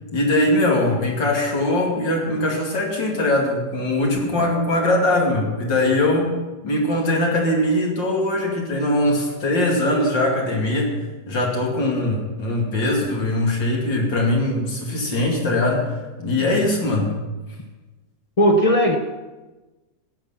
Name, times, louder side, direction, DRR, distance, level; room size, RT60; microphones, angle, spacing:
voice 1, 0.1-6.3 6.6-10.9 11.3-15.9 16.2-17.1, left 1 dB, 80° left, -1 dB, 3.2 m, -21 dB
voice 2, 18.4-19.0, equal, 60° left, 5 dB, 0.3 m, -16 dB
15.5 x 10.0 x 5.9 m, 1.2 s
omnidirectional pair, 2.0 m